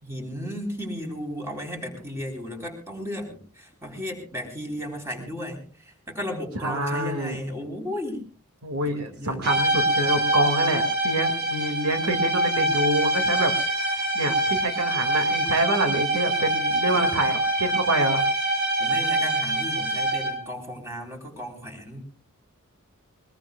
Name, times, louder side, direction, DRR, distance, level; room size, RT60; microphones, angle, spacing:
voice 1, 0.0-8.3 9.0-9.4 16.9-17.1 18.8-22.0, equal, 10° right, 2 dB, 3.9 m, -34 dB
voice 2, 6.6-7.4 8.6-18.2, right 1 dB, 80° right, 6 dB, 2.2 m, -27 dB
sound 1, 9.4-20.5, right 1 dB, 45° right, 2.6 m, -25 dB
22.5 x 21.5 x 2.3 m, 0.38 s
head